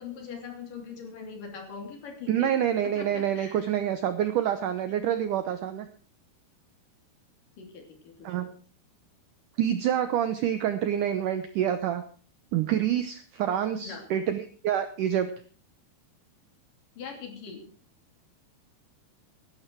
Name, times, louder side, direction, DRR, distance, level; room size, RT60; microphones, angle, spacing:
voice 1, 0.0-2.5 2.8-3.6 7.6-8.4 13.7-14.1 17.0-17.7, left 6 dB, 55° left, 4 dB, 4.2 m, -42 dB
voice 2, 2.3-5.9 8.2-8.5 9.6-12.0 12.5-15.3, right 10 dB, 75° right, 10 dB, 1.9 m, -27 dB
17.0 x 12.5 x 4.5 m, 0.40 s
omnidirectional pair, 4.8 m